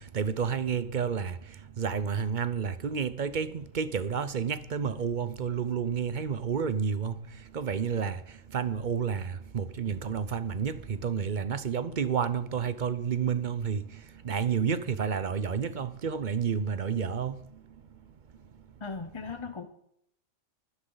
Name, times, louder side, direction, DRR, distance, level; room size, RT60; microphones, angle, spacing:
voice 1, 0.0-17.6, right 6 dB, 45° right, 0.7 m, -30 dB
voice 2, 18.8-19.7, left 4 dB, 30° left, 0.7 m, -38 dB
23.5 x 10.0 x 3.9 m
omnidirectional pair, 1.4 m